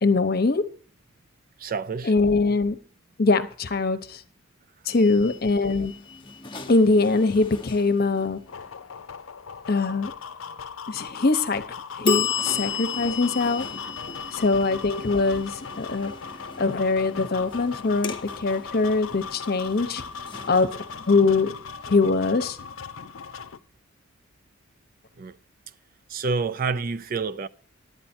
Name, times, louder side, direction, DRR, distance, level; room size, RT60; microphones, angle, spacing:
voice 1, 0.0-0.6 2.0-2.8 3.2-4.2 4.9-5.9 6.7-8.4 9.7-10.1 10.9-11.6 12.0-13.7 14.3-16.1 16.6-20.0 20.5-20.7 21.1-21.5 21.9-22.6, left 3 dB, 50° left, 0.9 m, -22 dB
voice 2, 1.6-2.1 13.8-13.9 14.2-14.3 25.2-25.4 26.1-27.5, right 4 dB, 45° right, 0.5 m, -28 dB
sound 1, 4.9-8.6 12.0-22.7, left 6 dB, 25° left, 0.9 m, -35 dB
sound 2, 8.5-23.6, left 6 dB, 85° left, 0.6 m, -39 dB
11.0 x 9.1 x 4.4 m
head